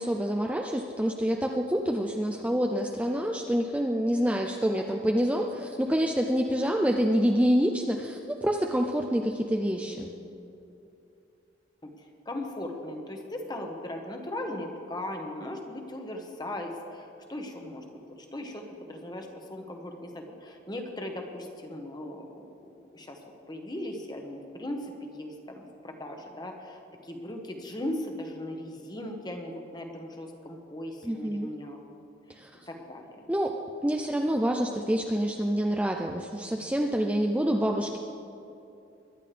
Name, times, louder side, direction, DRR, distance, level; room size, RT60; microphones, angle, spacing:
voice 1, 0.0-10.1 31.0-31.5 32.3-32.5 33.3-33.6 33.8-38.0, equal, 5° right, 2 dB, 0.4 m, -27 dB
voice 2, 4.7-5.4 11.8-22.5 22.7-23.2 23.5-31.8 32.7-33.3, left 1 dB, 20° left, 3 dB, 1.2 m, -38 dB
22.5 x 10.5 x 3.4 m, 2.7 s
head